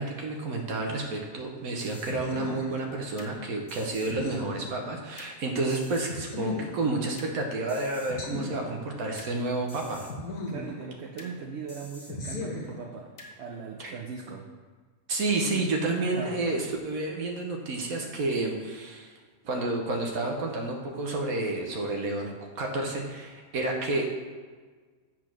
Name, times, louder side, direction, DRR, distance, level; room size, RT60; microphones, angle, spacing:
voice 1, 0.0-10.0 13.8-13.9 15.1-19.1 19.4-22.3 22.6-24.2, right 2 dB, 80° right, 1 dB, 1.4 m, -30 dB
sound 1, 1.8-3.3 3.7-5.3 5.7-7.3 7.7-9.3 9.7-11.3 11.7-13.3, left 2 dB, 70° left, 1.7 m, -39 dB
voice 2, 10.5-13.1 13.4-14.5 16.0-16.4, right 5 dB, 60° right, 2 dB, 0.9 m, -39 dB
8.3 x 4.5 x 6.0 m, 1.5 s
omnidirectional pair, 1.5 m